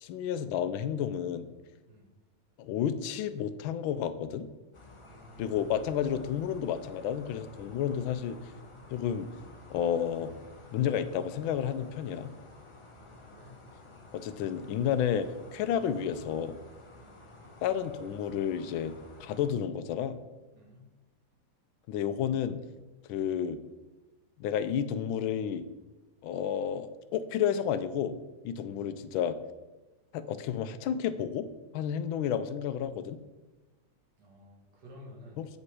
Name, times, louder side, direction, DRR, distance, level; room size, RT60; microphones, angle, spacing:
voice 1, 0.0-1.5 2.6-4.5 5.4-8.4 8.9-9.3 9.7-10.3 10.7-12.3 14.1-16.6 17.6-20.2 21.9-22.6 23.1-23.6 24.4-25.7 26.2-28.2 28.4-29.4 30.1-31.5 31.7-33.2 35.4-35.5, left 9 dB, 90° left, 12 dB, 1.4 m, -31 dB
sound 1, 4.7-19.5, left 2 dB, 30° left, 0.6 m, -52 dB
voice 2, 5.1-5.6 13.0-13.6 17.0-17.1 20.5-20.8 28.6-28.8 32.0-32.1 34.2-35.5, equal, 60° right, -1 dB, 2.3 m, -53 dB
8.2 x 5.3 x 4.8 m, 1.2 s
omnidirectional pair, 2.1 m